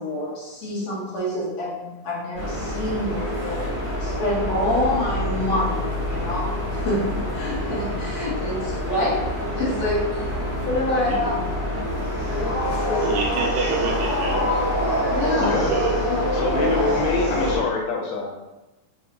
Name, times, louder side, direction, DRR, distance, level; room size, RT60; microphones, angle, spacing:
voice 1, 0.0-3.6 4.0-6.5 6.8-9.2 9.5-10.0 10.6-11.4 12.3-12.6 12.9-13.1 14.8-15.6 16.0-16.3, left 1 dB, 60° left, -6 dB, 1.9 m, -26 dB
sound 1, 2.3-17.6, left 1 dB, 60° right, 0.5 m, -26 dB
voice 2, 13.0-14.8 15.7-16.0, right 4 dB, 80° right, -1 dB, 1.7 m, -27 dB
voice 3, 15.4-15.7 16.3-18.3, left 3 dB, 90° left, 0 dB, 2.5 m, -25 dB
5.7 x 2.3 x 2.8 m, 1.0 s
omnidirectional pair, 3.9 m